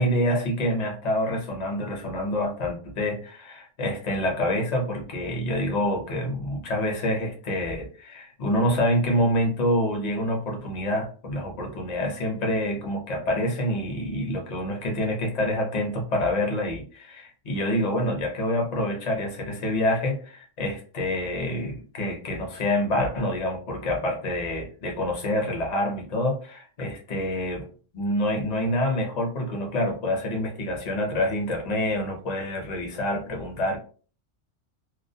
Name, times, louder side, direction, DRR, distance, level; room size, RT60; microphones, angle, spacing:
voice 1, 0.0-27.6 27.9-33.8, left 1 dB, 40° left, 1 dB, 0.6 m, -27 dB
2.3 x 2.0 x 2.6 m, 0.40 s
omnidirectional pair, 1.3 m